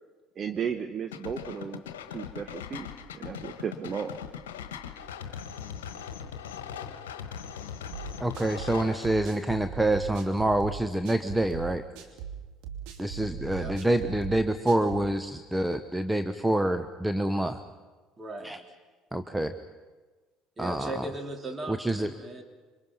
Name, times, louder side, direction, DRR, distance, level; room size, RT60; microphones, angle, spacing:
voice 1, 0.4-1.8 2.1-2.9 3.1-4.1, right 7 dB, 40° right, 8 dB, 1.1 m, -34 dB
sound 1, 1.1-9.0, left 8 dB, 75° left, 1.4 m, -40 dB
sound 2, 7.9-15.1, right 8 dB, 65° right, 2.7 m, -40 dB
voice 2, 8.2-11.8 13.0-17.6 18.4-18.6 19.1-19.5 20.6-21.0 21.7-22.1, right 1 dB, 10° right, 8 dB, 1.0 m, -27 dB
voice 3, 18.2-18.5 20.6-22.4, right 1 dB, 25° right, 3 dB, 3.4 m, -38 dB
27.0 x 24.0 x 5.7 m, 1.3 s
figure-of-eight pair, 60°, 0 cm